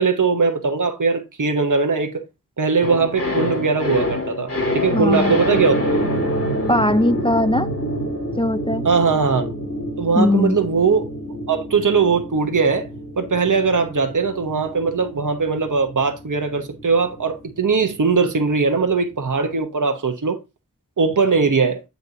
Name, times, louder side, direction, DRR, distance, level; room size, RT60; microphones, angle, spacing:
voice 1, 0.0-2.2 2.6-5.9 8.8-9.5 10.0-11.1 11.5-12.9 13.2-20.4 21.0-21.8, right 4 dB, 70° right, 0.9 m, -20 dB
sound 1, 2.8-19.1 19.4-19.5, equal, 45° left, 1.7 m, -27 dB
voice 2, 4.9-5.4 6.7-7.7 8.4-8.8 10.2-10.6, left 1 dB, 15° left, 0.5 m, -19 dB
8.0 x 4.1 x 3.9 m
wide cardioid pair, 45°, 33 cm